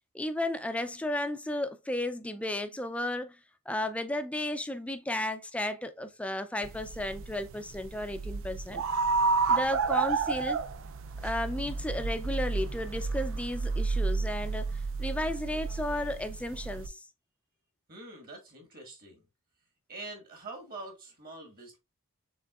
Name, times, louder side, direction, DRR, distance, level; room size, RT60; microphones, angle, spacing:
voice 1, 0.1-3.4 3.7-8.8 9.5-10.6 11.2-14.7 15.0-17.1, left 1 dB, 5° left, 0.4 m, -33 dB
sound 1, 6.6-16.9, right 4 dB, 60° right, 0.5 m, -31 dB
voice 2, 17.9-19.3 19.9-21.8, right 2 dB, 40° right, 1.8 m, -45 dB
5.8 x 3.8 x 2.4 m
head